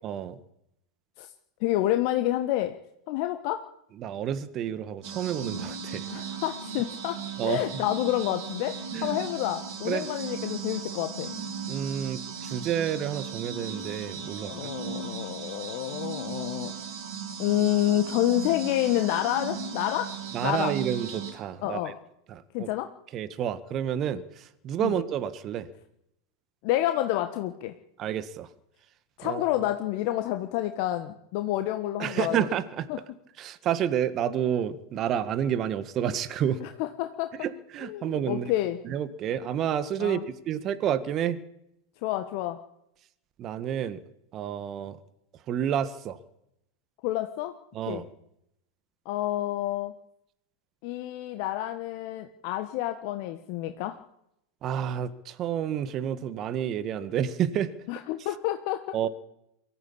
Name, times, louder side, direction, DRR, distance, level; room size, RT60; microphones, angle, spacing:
voice 1, 0.0-0.4 4.0-6.1 7.4-7.6 8.9-9.2 9.9-10.1 11.7-14.5 20.3-21.8 22.3-22.7 23.1-25.7 28.0-28.5 29.2-29.4 32.0-32.9 33.4-36.6 37.4-38.5 38.8-40.2 40.5-41.4 43.4-44.0 44.3-45.0 45.5-46.2 47.7-48.1 54.6-57.7 58.9-59.1, right 9 dB, 40° right, 13 dB, 1.8 m, -29 dB
voice 2, 1.6-2.8 3.1-3.6 6.1-8.7 9.0-11.3 14.4-16.7 17.4-20.1 20.4-20.7 21.6-22.0 22.5-22.9 24.8-24.9 26.6-27.7 29.2-32.5 32.9-33.0 36.6-37.3 37.8-38.8 40.0-40.2 42.0-42.6 47.0-47.5 47.9-48.1 49.0-49.9 50.8-54.0 57.9-58.9, left 14 dB, 55° left, 7 dB, 1.4 m, -29 dB
sound 1, 5.0-21.3, right 6 dB, 55° right, 5.5 m, -37 dB
23.5 x 14.0 x 8.7 m, 0.79 s
hypercardioid pair, 95°, 0 cm